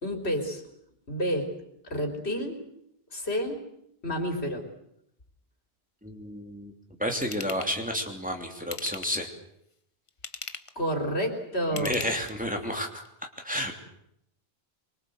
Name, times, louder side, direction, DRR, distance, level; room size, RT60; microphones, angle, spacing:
voice 1, 0.0-0.6 1.1-1.5 1.8-2.6 3.1-3.6 4.0-4.6 10.8-12.1, equal, 90° left, 3 dB, 4.2 m, -29 dB
voice 2, 6.0-6.7 7.0-9.3 11.7-13.0 13.4-13.7, equal, 10° right, 2 dB, 3.1 m, -31 dB
Ratchet pawl / Tools, 7.2-7.7 8.6-9.3 10.1-10.8 11.6-12.5 13.0-13.1, left 3 dB, 30° left, 1.1 m, -39 dB
25.0 x 23.5 x 8.0 m, 0.77 s
omnidirectional pair, 1.1 m